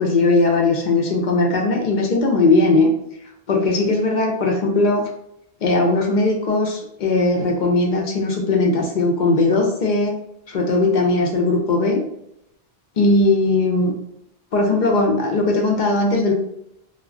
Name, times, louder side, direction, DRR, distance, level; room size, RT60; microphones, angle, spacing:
voice 1, 0.0-2.9 3.5-5.1 5.6-10.2 10.5-12.0 13.0-13.9 14.5-16.3, left 2 dB, 55° left, 1 dB, 0.6 m, -18 dB
2.2 x 2.0 x 3.5 m, 0.77 s
omnidirectional pair, 1.0 m